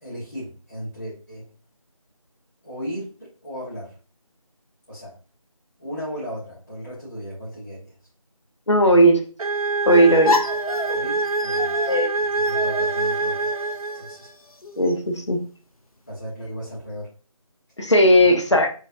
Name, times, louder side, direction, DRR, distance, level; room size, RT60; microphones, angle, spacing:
voice 1, 0.0-1.4 2.6-3.9 4.9-5.1 5.8-7.9 10.9-11.7 12.5-13.5 13.9-14.3 16.1-17.1 18.2-18.4, equal, 25° left, 1.3 m, -35 dB
voice 2, 8.7-9.2 9.9-10.3 11.9-12.1 14.8-15.4 17.8-18.7, right 1 dB, 55° left, 0.9 m, -16 dB
sound 1, 9.4-14.3, right 3 dB, 85° right, 0.5 m, -25 dB
sound 2, 9.9-14.9, left 4 dB, 85° left, 0.8 m, -30 dB
5.7 x 3.2 x 2.6 m
figure-of-eight pair, 175°, 18 cm